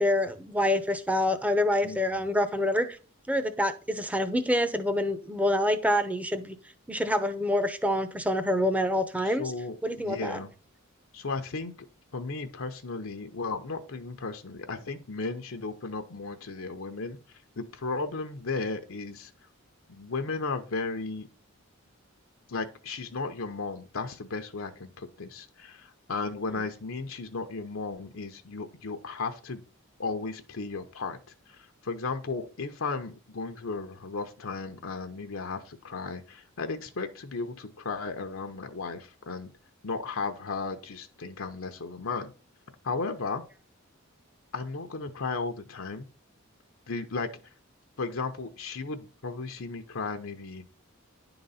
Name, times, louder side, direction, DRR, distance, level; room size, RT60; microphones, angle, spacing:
voice 1, 0.0-2.9 3.3-6.6 6.9-9.5 9.8-10.4, left 1 dB, 5° right, 10 dB, 0.8 m, -26 dB
voice 2, 1.8-2.3 9.2-10.5 11.1-11.7 12.1-17.2 17.6-19.3 19.9-21.3 22.5-29.6 30.0-31.2 31.5-39.5 39.8-42.3 42.8-43.4 44.5-46.1 46.9-47.3 48.0-50.6, left 4 dB, 70° left, 6 dB, 0.8 m, -35 dB
10.5 x 3.9 x 5.6 m, 0.35 s
head